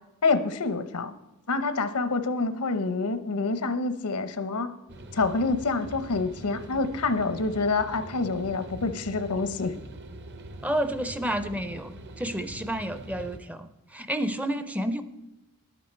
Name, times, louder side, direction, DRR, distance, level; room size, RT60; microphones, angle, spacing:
voice 1, 0.2-1.1 1.5-4.7 5.1-9.7, left 3 dB, 85° left, 11 dB, 0.8 m, -27 dB
sound 1, 4.9-13.4, right 1 dB, 50° right, 0.8 m, -43 dB
voice 2, 10.6-15.0, right 1 dB, 5° right, 11 dB, 0.4 m, -30 dB
11.0 x 9.3 x 4.3 m, 0.98 s
head